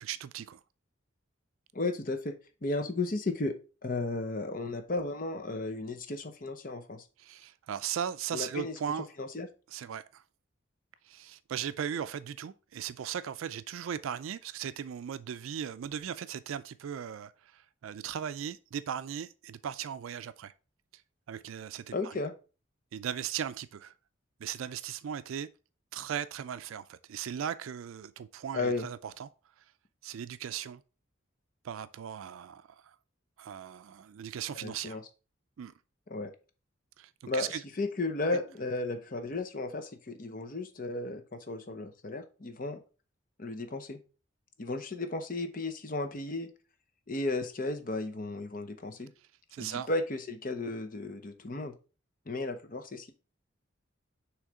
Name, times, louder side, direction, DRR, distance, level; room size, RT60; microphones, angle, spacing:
voice 1, 0.0-0.6 7.2-9.1 9.7-10.2 11.1-20.5 21.3-22.1 22.9-23.9 24.4-25.5 25.9-29.3 30.0-30.8 31.6-32.8 33.4-35.0 35.6-35.7 37.0-37.6 49.5-49.9, right 8 dB, 85° right, 0.4 m, -38 dB
voice 2, 1.7-7.0 8.3-8.8 9.2-9.5 21.9-22.3 28.5-28.9 34.5-35.0 36.1-36.3 37.3-42.8 43.4-44.0 44.6-46.5 47.1-49.1 49.6-51.7 52.3-53.1, left 2 dB, 40° left, 0.8 m, -34 dB
6.3 x 3.2 x 4.8 m
head